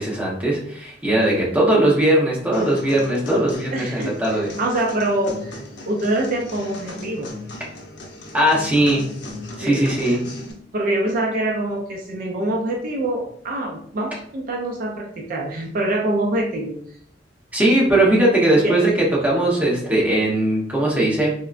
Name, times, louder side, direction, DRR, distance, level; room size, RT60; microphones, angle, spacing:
voice 1, 0.0-4.5 8.3-9.0 9.6-10.2 17.5-21.3, right 1 dB, 10° right, -5 dB, 0.8 m, -19 dB
sound 1, 2.5-10.5, left 2 dB, 85° left, 0.6 m, -37 dB
voice 2, 3.3-7.3 9.6-9.9 10.7-16.8 18.6-18.8, right 1 dB, 55° right, 0 dB, 0.4 m, -25 dB
3.6 x 2.1 x 2.4 m, 0.63 s
head